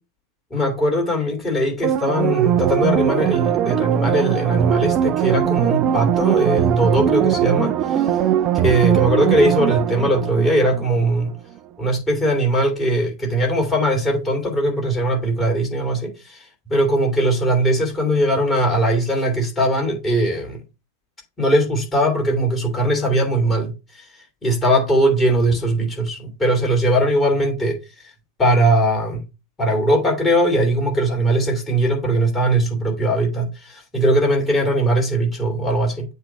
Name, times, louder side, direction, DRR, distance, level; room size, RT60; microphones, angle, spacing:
voice 1, 0.5-8.0 8.6-11.3 11.8-20.6 21.4-24.0 24.4-27.8 28.4-29.2 29.6-36.0, right 1 dB, 20° left, 2.8 m, -20 dB
sound 1, 1.8-11.2 11.6-11.7, right 11 dB, 35° right, 0.6 m, -20 dB
7.9 x 2.7 x 5.7 m
figure-of-eight pair, 90°, 0 cm